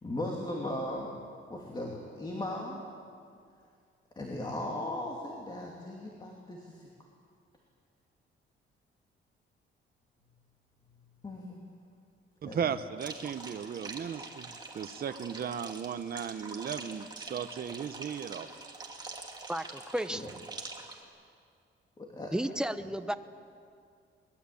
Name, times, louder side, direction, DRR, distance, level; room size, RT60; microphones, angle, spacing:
voice 1, 0.0-1.2 1.5-2.8 4.2-6.9 11.2-11.6 12.5-12.6 20.1-20.3 22.0-22.3, left 1 dB, 20° left, -1 dB, 2.7 m, -37 dB
voice 2, 12.4-18.5, right 8 dB, 45° right, 9 dB, 0.8 m, -36 dB
sound 1, 13.0-21.0, right 3 dB, 20° right, 2.6 m, -45 dB
voice 3, 19.5-20.3 22.3-23.1, right 1 dB, 5° right, 10 dB, 0.8 m, -33 dB
23.5 x 20.5 x 8.5 m, 2.3 s
cardioid pair, 145°, 21 cm